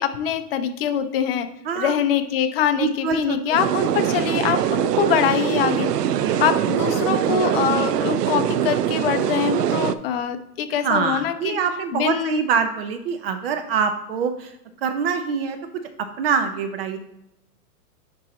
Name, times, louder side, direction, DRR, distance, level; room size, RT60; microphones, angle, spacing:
voice 1, 0.0-1.5 1.8-5.9 6.4-11.6 11.9-12.4, left 8 dB, 40° left, 7 dB, 0.8 m, -23 dB
voice 2, 1.6-2.0 2.8-3.8 6.2-6.4 10.8-14.6 14.8-15.6 16.0-17.0, right 6 dB, 40° right, 8 dB, 0.7 m, -25 dB
sound 1, 3.5-9.9, right 10 dB, 90° right, 0.6 m, -22 dB
9.9 x 4.4 x 3.1 m, 0.83 s
hypercardioid pair, 150°, 46 cm